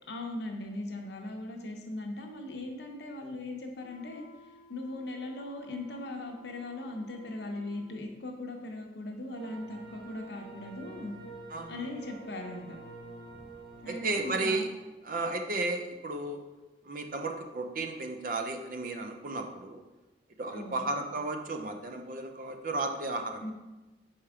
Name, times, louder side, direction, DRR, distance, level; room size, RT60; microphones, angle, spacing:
voice 1, 0.1-4.2 4.7-11.1 11.7-12.8 13.8-14.7 20.5-20.9 23.4-23.5, left 2 dB, 70° left, 2 dB, 0.9 m, -39 dB
sound 1, 3.8-8.0, equal, 25° left, 0.9 m, -57 dB
sound 2, 9.3-14.5, right 3 dB, 70° right, 1.5 m, -47 dB
voice 2, 13.9-14.7 15.0-16.4 16.8-19.8 20.4-23.4, right 2 dB, 50° right, 5 dB, 0.5 m, -33 dB
4.7 x 4.4 x 4.9 m, 1.1 s
head